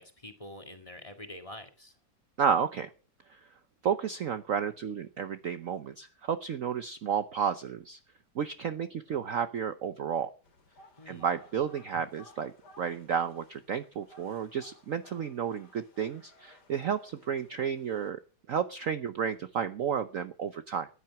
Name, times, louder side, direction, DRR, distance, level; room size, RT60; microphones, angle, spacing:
voice 1, 0.0-2.0 11.0-11.3, left 1 dB, 20° left, 6 dB, 1.9 m, -46 dB
voice 2, 2.4-2.9 3.3-3.4 3.8-8.0 8.3-10.3 11.1-18.2 18.5-20.9, right 7 dB, 55° right, 11 dB, 1.0 m, -32 dB
sound 1, 10.4-18.1, left 1 dB, 60° left, 2.9 m, -58 dB
14.5 x 10.5 x 5.9 m, 0.37 s
omnidirectional pair, 2.0 m